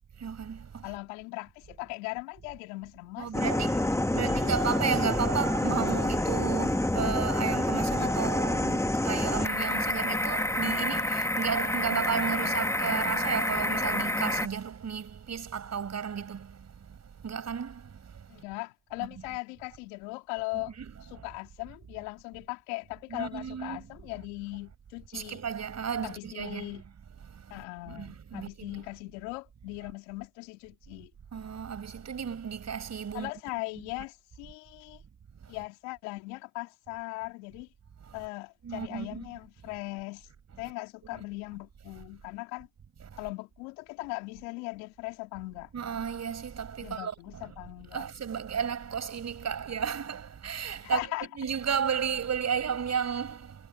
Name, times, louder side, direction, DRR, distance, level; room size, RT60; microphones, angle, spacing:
voice 1, 0.2-0.9 3.2-3.9 4.1-16.5 17.2-17.8 20.5-20.9 23.1-23.9 25.1-26.7 27.9-28.7 31.3-33.3 38.6-39.3 41.1-41.2 45.7-47.4 47.9-51.0 51.3-53.6, right 7 dB, 50° right, 6.4 m, -33 dB
voice 2, 0.8-4.4 18.3-20.7 21.1-25.4 26.0-26.8 27.5-31.1 33.1-35.0 35.5-37.7 38.1-40.3 40.6-42.7 43.2-45.7 46.8-48.0 50.8-51.3, left 25 dB, 85° left, 3.6 m, -39 dB
sound 1, 3.3-14.5, left 1 dB, 10° left, 1.6 m, -28 dB
hypercardioid pair, 50°, 35 cm